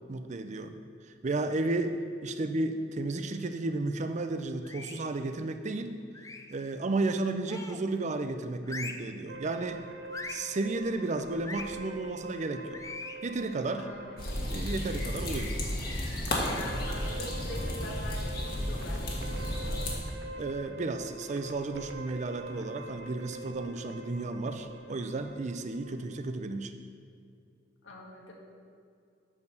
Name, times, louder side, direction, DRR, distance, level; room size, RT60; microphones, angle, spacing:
voice 1, 0.1-0.7 1.2-6.0 6.5-9.8 10.3-12.8 13.2-13.9 14.5-15.6 20.4-26.7, right 2 dB, 40° right, 8 dB, 0.5 m, -33 dB
sound 1, 4.6-5.1 6.1-6.6 7.5-7.9 8.6-9.1 10.1-10.5 11.4-11.7 12.7-13.2, left 3 dB, 20° left, 0.4 m, -41 dB
sound 2, 9.3-26.4, right 2 dB, 80° right, 0.8 m, -45 dB
voice 2, 13.8-14.3 16.5-19.0 19.3-20.0 27.8-28.3, left 2 dB, 80° left, -1 dB, 1.6 m, -44 dB
sound 3, 14.2-20.0, left 1 dB, 55° left, 1.6 m, -33 dB
8.5 x 4.6 x 6.5 m, 2.3 s
head